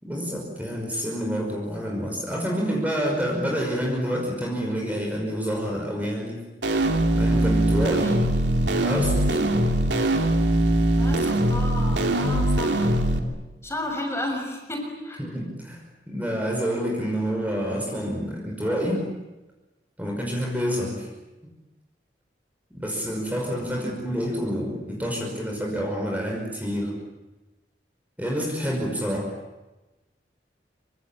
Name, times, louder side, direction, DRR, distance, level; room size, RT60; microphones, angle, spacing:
voice 1, 0.0-6.4 7.1-8.1 8.8-9.3 15.2-19.1 20.0-21.1 22.7-27.0 28.2-29.3, equal, 10° right, 0 dB, 5.5 m, -28 dB
sound 1, 6.6-13.2, right 1 dB, 80° right, 2.9 m, -22 dB
voice 2, 7.9-8.3 9.2-9.6 11.0-13.0 13.6-15.2 23.7-24.0, left 1 dB, 15° left, 2 dB, 6.5 m, -33 dB
27.0 x 24.5 x 8.9 m, 1.1 s
head